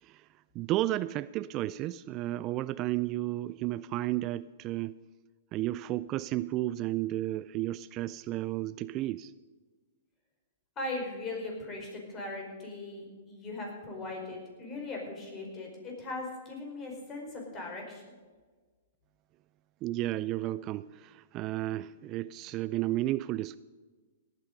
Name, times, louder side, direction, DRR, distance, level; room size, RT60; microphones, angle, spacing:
voice 1, 0.5-4.9 5.5-9.3 19.8-23.6, right 15 dB, 35° right, 17 dB, 0.3 m, -32 dB
voice 2, 10.8-18.1, left 2 dB, 30° left, 0 dB, 5.0 m, -39 dB
18.0 x 9.0 x 5.4 m, 1.4 s
hypercardioid pair, 125°, 0 cm